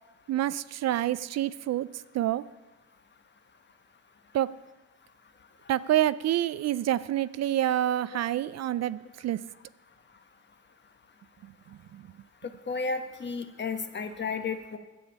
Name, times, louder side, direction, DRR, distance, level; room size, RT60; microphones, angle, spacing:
voice 1, 0.3-1.9 2.1-2.4 4.3-4.5 5.7-9.4 11.9-12.0, right 12 dB, 60° right, 16 dB, 0.5 m, -27 dB
voice 2, 12.7-14.8, left 4 dB, 35° left, 8 dB, 1.2 m, -32 dB
10.5 x 7.0 x 8.8 m, 1.1 s
cardioid pair, 90°, 30 cm